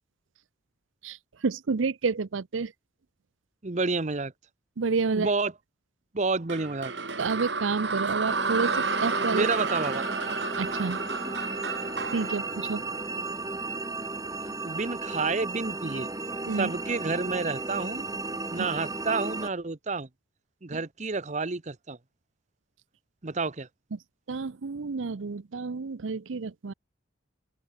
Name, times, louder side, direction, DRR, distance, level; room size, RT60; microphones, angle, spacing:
voice 1, 1.0-2.7 4.8-5.3 7.2-9.5 10.6-11.0 12.1-12.8 16.5-16.7 24.3-26.7, right 4 dB, 80° right, 0.6 m, -29 dB
voice 2, 3.6-4.3 5.1-5.5 6.1-6.9 9.3-10.1 14.6-16.1 16.6-18.1 18.5-20.1 20.6-22.0 23.2-23.7, right 3 dB, 35° right, 0.9 m, -29 dB
sound 1, 6.5-13.7, right 4 dB, 60° right, 4.0 m, -31 dB
sound 2, 8.3-19.5, right 3 dB, 20° right, 1.2 m, -35 dB
open air
head